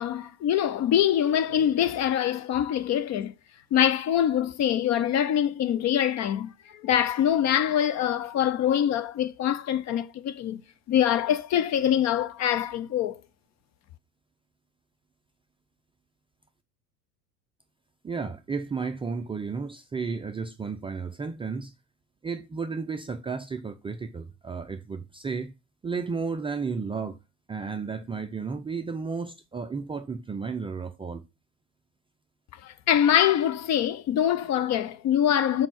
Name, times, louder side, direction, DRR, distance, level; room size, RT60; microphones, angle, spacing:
voice 1, 0.0-3.3 3.7-10.6 10.9-13.2 32.6-35.7, left 10 dB, 35° left, 0.6 m, -24 dB
voice 2, 18.0-21.7 22.2-25.5 25.8-27.2 27.5-31.2, right 5 dB, 10° right, 0.4 m, -33 dB
6.0 x 5.1 x 5.7 m
hypercardioid pair, 80°, 50 cm